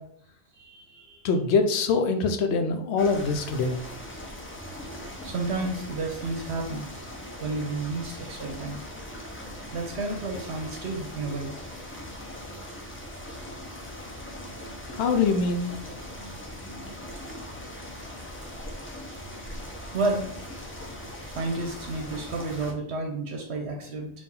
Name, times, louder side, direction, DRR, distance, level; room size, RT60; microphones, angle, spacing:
voice 1, 0.5-1.3 5.2-6.9 7.4-8.8 9.7-11.5 19.9-20.3 21.4-24.1, right 3 dB, 75° right, 1 dB, 1.0 m, -31 dB
voice 2, 1.2-3.8 14.9-15.7, left 4 dB, 80° left, 7 dB, 0.9 m, -24 dB
sound 1, 3.0-22.7, left 1 dB, 15° left, 0.5 m, -40 dB
4.2 x 2.5 x 3.7 m, 0.67 s
omnidirectional pair, 1.1 m